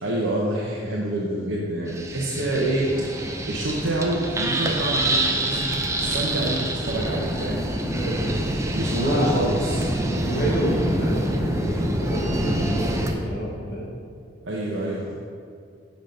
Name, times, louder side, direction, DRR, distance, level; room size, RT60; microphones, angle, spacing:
voice 1, 0.0-2.9 3.4-7.7 8.8-9.9 14.4-15.1, right 1 dB, 80° right, -3 dB, 0.8 m, -27 dB
sound 1, 1.9-13.1, right 1 dB, 15° right, 0.5 m, -26 dB
voice 2, 7.8-8.4 8.9-9.4 10.1-13.9, equal, 60° left, -3 dB, 1.1 m, -28 dB
6.1 x 5.2 x 5.2 m, 2.2 s
head